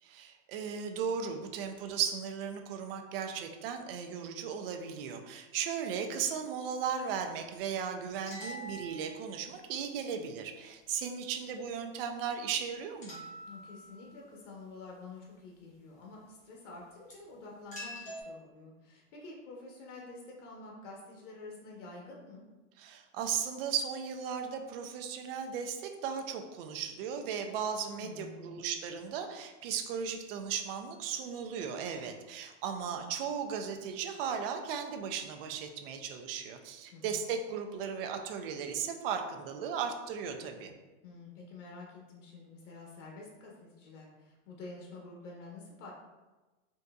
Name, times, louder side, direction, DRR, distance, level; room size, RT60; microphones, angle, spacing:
voice 1, 0.0-13.2 22.8-40.7, right 7 dB, 50° right, 5 dB, 0.5 m, -36 dB
sound 1, 8.1-9.7 13.0-14.3 17.1-17.2 17.7-18.2, equal, 20° left, 0.9 m, -45 dB
voice 2, 13.5-22.5 28.0-28.6 36.9-37.2 41.0-45.9, left 3 dB, 75° left, -2 dB, 0.9 m, -48 dB
3.6 x 2.7 x 2.3 m, 1.2 s
supercardioid pair, 145°, 37 cm